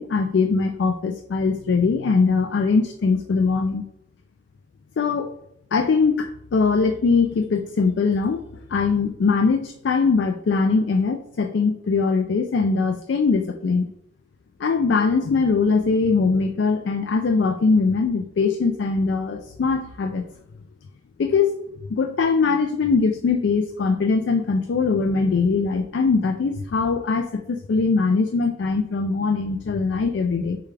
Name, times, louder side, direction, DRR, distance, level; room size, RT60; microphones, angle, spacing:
voice 1, 0.0-3.8 5.0-5.3 5.7-8.4 8.7-13.9 14.6-20.2 21.2-21.6 21.9-30.6, left 4 dB, 65° left, 6 dB, 0.3 m, -21 dB
6.7 x 2.3 x 3.3 m, 0.76 s
head